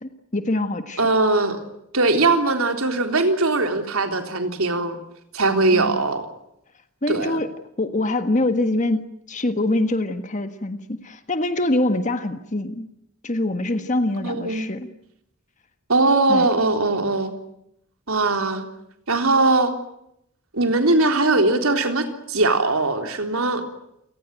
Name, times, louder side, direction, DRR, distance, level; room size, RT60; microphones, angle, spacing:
voice 1, 0.0-1.0 5.7-6.0 7.0-7.5 7.8-12.9 13.2-14.9 16.3-16.5, left 2 dB, 35° left, 9 dB, 1.5 m, -24 dB
voice 2, 1.0-1.6 1.9-5.0 5.3-6.2 7.1-7.4 14.2-14.7 15.9-17.3 18.1-18.6 19.1-19.7 20.5-23.6, right 2 dB, 90° right, 6 dB, 3.7 m, -20 dB
28.5 x 19.5 x 9.1 m, 0.78 s
head